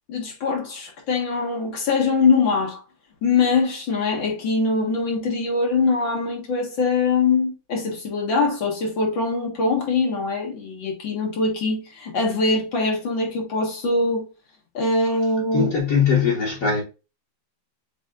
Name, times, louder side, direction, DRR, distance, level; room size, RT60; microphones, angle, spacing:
voice 1, 0.1-2.8 3.2-14.2 14.7-15.7, left 4 dB, 75° left, 2.4 m, -22 dB
voice 2, 15.5-16.8, left 6 dB, 50° left, 1.4 m, -20 dB
7.3 x 2.9 x 2.5 m
omnidirectional pair, 2.1 m